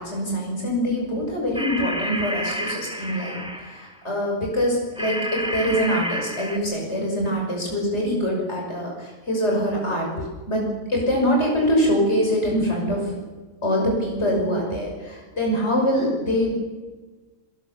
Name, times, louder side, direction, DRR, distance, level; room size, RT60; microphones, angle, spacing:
voice 1, 0.0-13.2 13.6-16.5, equal, 55° left, -1 dB, 6.5 m, -24 dB
sound 1, 1.5-3.9 5.0-6.6, equal, 5° right, 2.3 m, -30 dB
23.0 x 20.5 x 7.1 m, 1.3 s
omnidirectional pair, 1.4 m